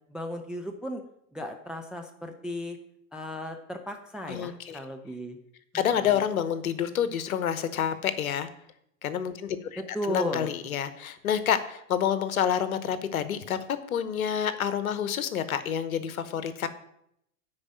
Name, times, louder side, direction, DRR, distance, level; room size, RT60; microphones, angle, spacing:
voice 1, 0.1-1.0 1.3-2.8 3.1-5.4 5.9-6.2 9.8-10.5, equal, ahead, 5 dB, 0.4 m, -35 dB
voice 2, 4.3-4.8 5.7-8.5 9.0-13.6 13.9-16.7, left 9 dB, 70° left, 12 dB, 1.1 m, -28 dB
9.8 x 4.9 x 7.5 m, 0.75 s
figure-of-eight pair, 90°, 45 cm